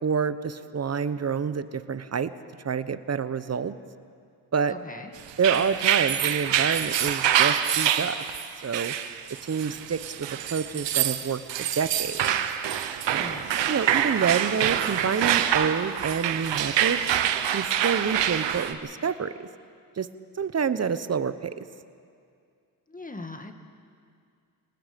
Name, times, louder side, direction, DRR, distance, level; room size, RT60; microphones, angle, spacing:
voice 1, 0.0-2.3 2.6-3.8 4.5-4.8 5.4-8.2 8.6-8.9 9.4-12.3 13.1-17.0 17.5-19.3 20.0-20.1 20.4-21.6, right 6 dB, 35° right, 13 dB, 1.0 m, -28 dB
voice 2, 4.7-5.1 13.2-13.5 22.9-23.6, left 2 dB, 20° left, 5 dB, 1.9 m, -40 dB
sound 1, 5.3-18.7, right 10 dB, 80° right, 1.1 m, -26 dB
28.0 x 19.0 x 5.3 m, 2.3 s
cardioid pair, 70°, 43 cm